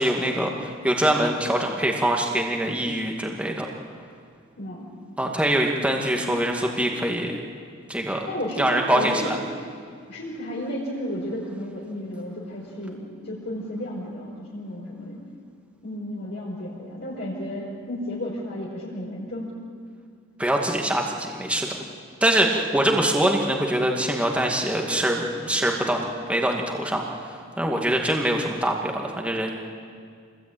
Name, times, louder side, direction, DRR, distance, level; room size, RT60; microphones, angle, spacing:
voice 1, 0.0-3.7 5.2-7.3 7.9-8.3 8.6-9.4 20.4-21.7 22.2-27.3 27.6-29.5, right 1 dB, 5° right, 0 dB, 2.1 m, -24 dB
voice 2, 4.6-4.9 8.2-9.3 10.1-15.2 15.8-19.5, left 1 dB, 55° left, -5 dB, 5.2 m, -33 dB
27.0 x 20.5 x 9.1 m, 2.2 s
head